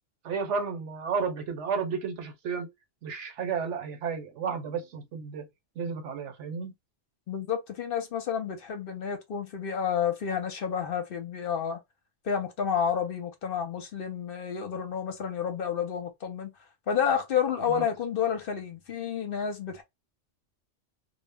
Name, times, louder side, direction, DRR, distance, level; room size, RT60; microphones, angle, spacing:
voice 1, 0.2-2.7 3.0-5.5 5.8-6.7 17.7-17.8, right 5 dB, 80° right, 1.0 m, -32 dB
voice 2, 7.3-11.8 12.2-16.5 16.9-19.8, left 7 dB, 60° left, 0.7 m, -30 dB
2.1 x 2.0 x 3.4 m
omnidirectional pair, 1.2 m